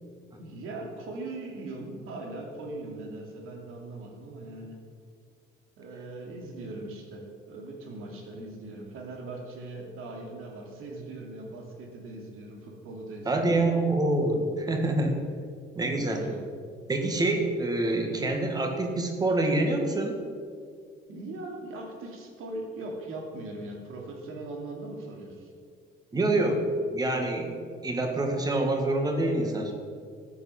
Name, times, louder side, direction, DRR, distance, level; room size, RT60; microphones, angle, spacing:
voice 1, 0.4-4.8 5.8-13.6 16.0-16.5 21.1-25.5, right 2 dB, 80° right, 1 dB, 2.7 m, -40 dB
voice 2, 13.2-15.2 15.7-16.2 16.9-20.2 26.1-27.6 27.8-29.7, right 2 dB, 20° right, 3 dB, 1.5 m, -26 dB
13.0 x 9.2 x 5.7 m, 2.1 s
cardioid pair, 170°, 21 cm